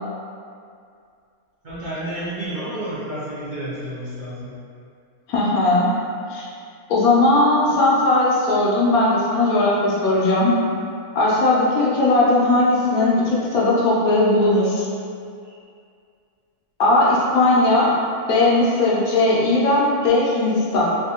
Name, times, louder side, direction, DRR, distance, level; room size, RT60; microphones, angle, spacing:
voice 1, 1.6-4.5 15.4-15.5, right 1 dB, 50° right, -11 dB, 0.6 m, -30 dB
voice 2, 5.3-5.9 6.3-6.5 6.9-10.5 11.1-14.8 16.8-17.9 18.3-20.8, left 2 dB, 80° left, -5 dB, 1.2 m, -18 dB
3.4 x 2.6 x 2.8 m, 2.3 s
omnidirectional pair, 1.5 m